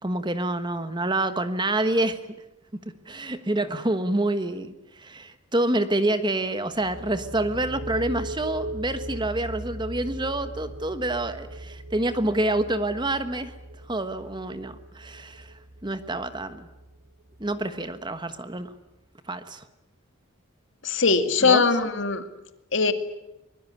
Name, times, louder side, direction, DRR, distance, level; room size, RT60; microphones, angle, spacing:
voice 1, 0.0-2.2 3.1-13.5 13.9-15.5 15.8-16.7 17.4-18.7 19.3-19.6 21.4-21.6, right 1 dB, 20° right, 10 dB, 1.3 m, -27 dB
sound 1, 6.6-18.2, right 1 dB, 70° right, 3.2 m, -39 dB
voice 2, 20.8-22.2 22.7-22.9, left 4 dB, 55° left, 9 dB, 2.1 m, -21 dB
24.0 x 22.0 x 9.6 m, 0.94 s
head